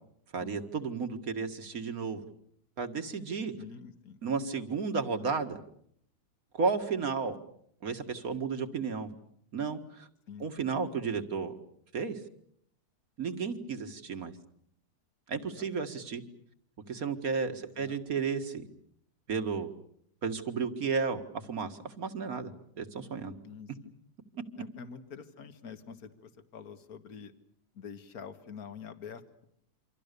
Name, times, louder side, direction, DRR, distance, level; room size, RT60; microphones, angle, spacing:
voice 1, 0.3-2.2 2.8-3.5 4.2-5.6 6.5-7.4 7.8-9.1 9.5-10.1 10.4-11.5 11.9-12.2 13.2-14.3 15.3-16.2 16.9-18.6 19.3-19.7 20.2-21.2 21.5-22.5 22.8-23.3, right 5 dB, 60° right, 8 dB, 2.3 m, -33 dB
voice 2, 3.6-4.2 10.3-10.5 15.4-15.7 17.6-18.0 23.4-23.9 24.6-27.3 27.8-29.5, left 6 dB, 65° left, 9 dB, 2.1 m, -46 dB
28.5 x 25.5 x 6.8 m, 0.70 s
omnidirectional pair, 1.7 m